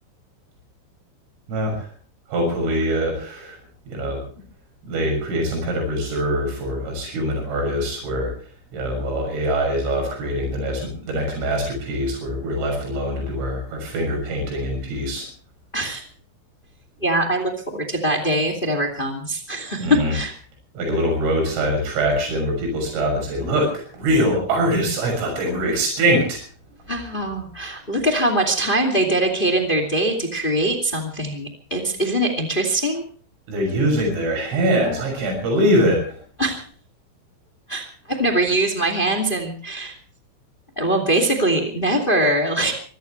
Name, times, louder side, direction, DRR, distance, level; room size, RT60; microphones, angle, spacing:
voice 1, 1.5-1.9 2.3-3.6 3.9-4.2 4.9-8.3 8.7-15.3 19.8-20.1 20.8-26.4 33.5-36.2, equal, 75° right, 1 dB, 9.1 m, -23 dB
voice 2, 15.7-16.0 17.0-20.3 26.9-33.0 36.4-36.6 37.7-39.9 40.7-42.7, right 1 dB, 25° left, 4 dB, 1.1 m, -22 dB
25.0 x 16.0 x 3.3 m, 0.44 s
omnidirectional pair, 5.9 m